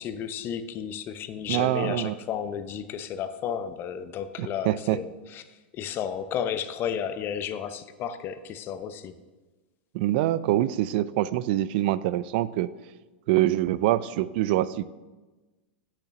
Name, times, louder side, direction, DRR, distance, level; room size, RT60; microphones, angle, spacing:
voice 1, 0.0-9.2, left 8 dB, 35° left, 12 dB, 0.7 m, -33 dB
voice 2, 1.5-2.1 4.4-5.0 9.9-12.7 13.3-14.8, right 14 dB, 60° right, 17 dB, 0.4 m, -25 dB
8.2 x 6.9 x 5.9 m, 1.2 s
hypercardioid pair, 115°, 6 cm